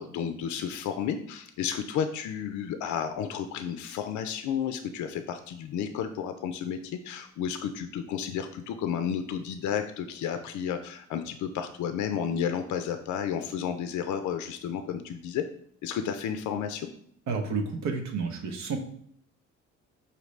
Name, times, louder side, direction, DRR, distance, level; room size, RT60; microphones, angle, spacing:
voice 1, 0.0-15.4 15.8-16.9, left 8 dB, 75° left, 8 dB, 0.5 m, -32 dB
voice 2, 17.3-18.8, right 4 dB, 70° right, 3 dB, 0.9 m, -30 dB
5.1 x 2.7 x 3.2 m, 0.65 s
cardioid pair, 80°, 30 cm